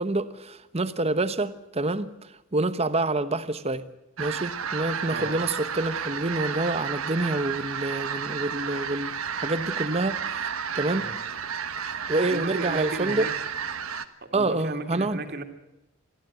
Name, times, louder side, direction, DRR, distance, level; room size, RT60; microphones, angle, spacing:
voice 1, 0.0-2.1 2.5-3.8 4.2-10.5 10.7-11.1 12.1-13.3 14.3-15.2, right 2 dB, 30° right, 12 dB, 1.1 m, -27 dB
sound 1, 4.2-14.1, right 7 dB, 85° right, 1.4 m, -32 dB
voice 2, 5.0-5.4 10.9-11.2 12.3-13.4 14.2-15.4, right 3 dB, 50° right, 5 dB, 2.5 m, -35 dB
22.0 x 14.5 x 9.2 m, 0.92 s
head